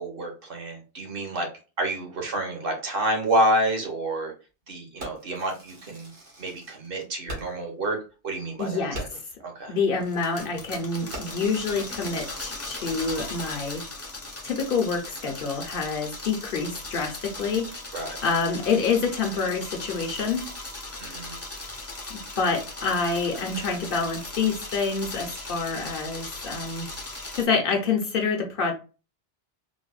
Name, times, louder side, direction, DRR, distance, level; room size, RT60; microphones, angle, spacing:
voice 1, 0.0-1.5 1.8-4.3 4.7-6.1 6.4-8.0 8.2-9.1 9.4-9.8 17.9-18.2 21.0-21.4, right 1 dB, 55° right, 2 dB, 1.0 m, -28 dB
Fireworks, 5.0-7.7 8.1-8.2 8.5-8.6 8.9-9.4 10.0-10.2 10.5-10.8 11.1-13.2, right 1 dB, 80° right, 1.4 m, -42 dB
voice 2, 8.6-9.0 9.7-13.8 14.4-17.7 18.2-20.4 22.4-26.9 27.3-28.7, left 4 dB, 55° left, 3 dB, 0.8 m, -27 dB
sound 1, 10.0-27.5, left 2 dB, 20° left, 0.4 m, -38 dB
4.0 x 2.1 x 2.3 m, 0.33 s
omnidirectional pair, 1.2 m